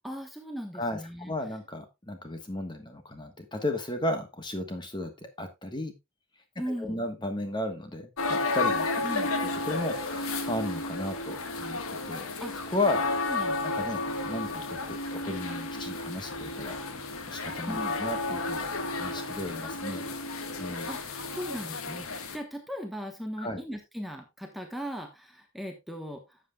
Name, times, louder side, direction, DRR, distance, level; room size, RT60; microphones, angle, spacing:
voice 1, 0.0-1.3 6.6-7.1 9.0-9.3 12.4-12.5 13.2-13.6 17.7-18.0 20.9-26.4, equal, ahead, 3 dB, 1.1 m, -38 dB
voice 2, 0.7-5.9 6.7-9.1 9.4-12.3 12.7-13.0 13.6-16.8 17.3-18.7 19.0-20.0 20.6-20.9 23.4-23.6, left 1 dB, 20° left, 7 dB, 1.3 m, -34 dB
sound 1, 8.2-22.4, left 3 dB, 85° left, 1.5 m, -32 dB
12.5 x 7.8 x 2.3 m, 0.21 s
head